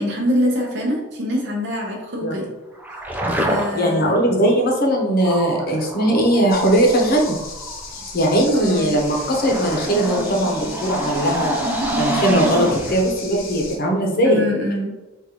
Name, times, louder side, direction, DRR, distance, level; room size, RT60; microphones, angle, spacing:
voice 1, 0.0-2.5 3.3-4.2 8.5-9.0 14.2-14.9, equal, 60° right, 0 dB, 0.8 m, -24 dB
sound 1, 2.8-4.0 5.2-8.0 8.6-13.1, right 1 dB, 10° right, 0.3 m, -27 dB
voice 2, 3.7-7.4 7.9-11.6 12.0-14.4, right 1 dB, 45° left, 0 dB, 0.7 m, -19 dB
sound 2, 6.5-13.8, left 4 dB, 80° left, 0.7 m, -36 dB
3.8 x 2.5 x 2.9 m, 1.1 s
head